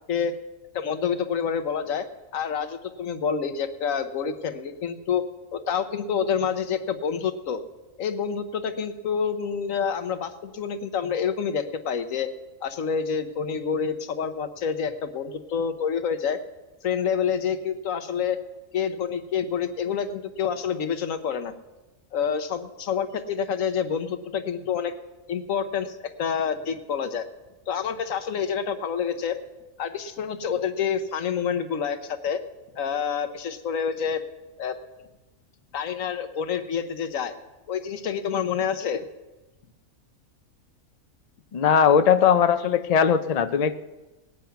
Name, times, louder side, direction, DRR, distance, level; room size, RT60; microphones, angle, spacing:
voice 1, 0.7-2.1 2.3-5.2 5.5-7.6 8.0-12.3 12.6-16.4 16.8-18.4 18.7-21.5 22.1-24.9 25.3-27.3 27.7-29.4 29.8-32.4 32.8-34.2 34.6-34.8 35.7-37.3 37.7-39.0, left 7 dB, 70° left, 10 dB, 1.3 m, -28 dB
voice 2, 41.5-43.8, left 7 dB, 55° left, 10 dB, 0.4 m, -19 dB
19.0 x 9.4 x 5.7 m, 1.1 s
omnidirectional pair, 1.4 m